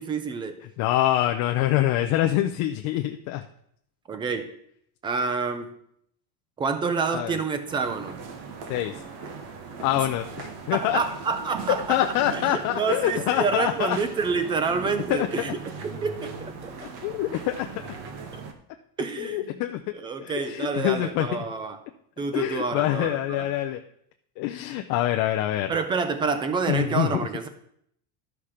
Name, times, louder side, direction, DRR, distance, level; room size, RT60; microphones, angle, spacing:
voice 1, 0.0-0.6 4.1-4.5 5.0-5.7 6.6-8.2 10.7-12.0 12.3-15.5 15.8-16.7 18.3-18.4 19.0-19.6 20.0-21.8 22.2-23.5 25.7-27.5, right 4 dB, 10° right, 9 dB, 0.3 m, -28 dB
voice 2, 0.8-3.4 7.1-7.4 8.7-8.9 9.8-11.0 11.9-14.0 15.1-15.3 17.0-17.7 19.2-19.9 20.2-21.4 22.3-23.8 24.4-25.8 26.7-27.2, left 13 dB, 40° left, 5 dB, 0.5 m, -25 dB
sound 1, 7.7-18.5, right 5 dB, 50° right, 1.3 m, -39 dB
12.0 x 5.8 x 4.9 m, 0.70 s
cardioid pair, 165°, 47 cm